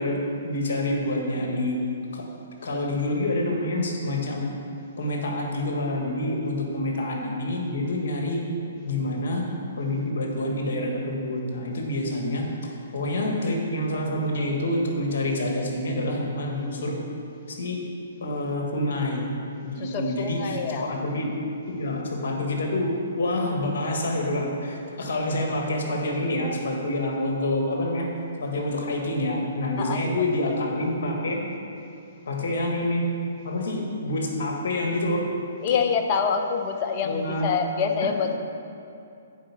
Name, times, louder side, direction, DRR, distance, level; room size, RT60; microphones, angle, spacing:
voice 1, 0.0-1.8 2.1-2.2 2.6-4.5 5.0-8.4 8.8-9.4 9.8-12.5 12.9-17.0 17.6-17.8 18.2-19.3 19.6-21.3 21.7-28.1 28.4-31.4 32.3-33.1 33.4-35.2 37.0-37.5 38.0-38.1, left 1 dB, 55° left, 1 dB, 1.6 m, -27 dB
voice 2, 19.8-20.9 29.8-30.0 35.6-38.4, left 6 dB, 35° left, 5 dB, 0.7 m, -26 dB
7.5 x 5.2 x 7.3 m, 2.5 s
figure-of-eight pair, 125°, 0 cm